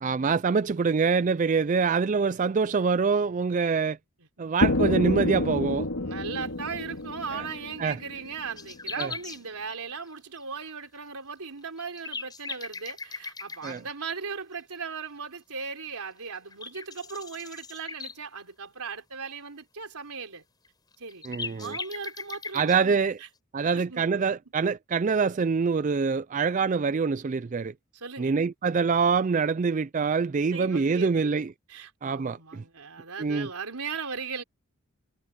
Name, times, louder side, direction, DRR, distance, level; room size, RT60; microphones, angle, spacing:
voice 1, 0.0-4.0 4.4-5.9 7.3-7.5 7.8-8.0 9.0-9.1 13.6-13.8 21.2-21.8 22.5-23.2 23.5-27.7 28.2-31.5 32.0-32.6 33.2-33.5, right 5 dB, 35° right, 0.3 m, -25 dB
sound 1, 4.6-8.5, left 2 dB, 75° left, 2.2 m, -28 dB
voice 2, 6.0-20.4 21.0-21.2 21.6-23.3 23.7-24.1 27.9-28.4 30.5-34.4, right 5 dB, 85° right, 3.8 m, -38 dB
sound 2, 7.2-7.3 7.7-7.8 8.0-9.4 11.3-11.4 11.8-13.8 15.9-16.0 16.3-18.2 20.7-20.8 20.9-22.8, left 4 dB, 20° left, 5.2 m, -39 dB
head